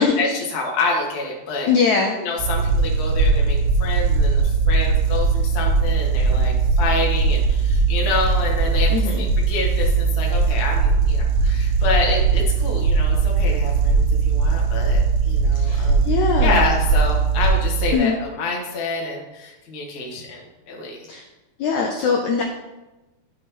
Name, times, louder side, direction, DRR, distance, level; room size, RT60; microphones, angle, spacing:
voice 1, 0.0-1.7 2.2-8.9 9.2-16.1 16.4-21.1, left 3 dB, 70° left, -1 dB, 0.9 m, -27 dB
voice 2, 1.7-2.2 8.9-9.3 15.6-16.6 17.9-18.2 21.1-21.2 21.6-22.4, left 5 dB, 85° left, 2 dB, 1.6 m, -21 dB
sound 1, 2.4-17.9, right 4 dB, 75° right, 2.5 m, -19 dB
12.0 x 5.9 x 3.0 m, 1.1 s
omnidirectional pair, 4.3 m